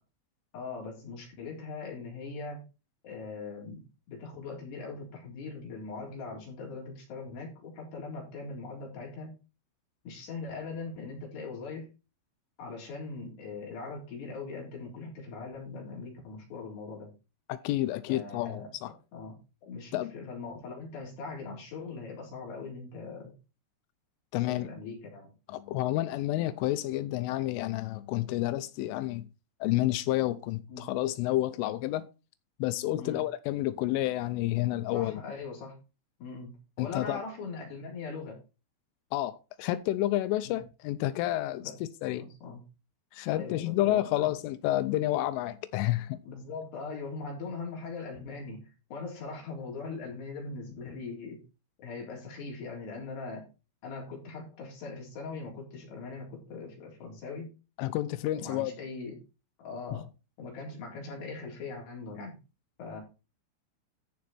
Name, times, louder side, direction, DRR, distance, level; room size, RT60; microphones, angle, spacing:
voice 1, 0.5-2.6 3.0-9.3 10.0-11.9 12.6-17.1 18.1-19.4 19.6-23.3 24.5-25.3 30.7-30.9 33.0-33.2 34.9-35.8 36.2-36.5 36.8-38.4 40.4-40.6 41.6-41.7 42.0-42.6 43.3-44.2 44.9-45.1 46.3-51.4 51.8-53.4 53.8-57.5 58.3-59.2 59.6-60.1 60.4-62.4 62.8-63.0, left 4 dB, 60° left, 5.8 m, -41 dB
voice 2, 17.5-18.9 19.9-20.1 24.3-24.7 25.5-29.3 29.6-32.1 32.6-35.2 36.8-37.2 39.1-42.2 43.1-46.2 57.8-58.7, left 15 dB, 85° left, 3.2 m, -30 dB
14.0 x 5.3 x 4.3 m
omnidirectional pair, 5.6 m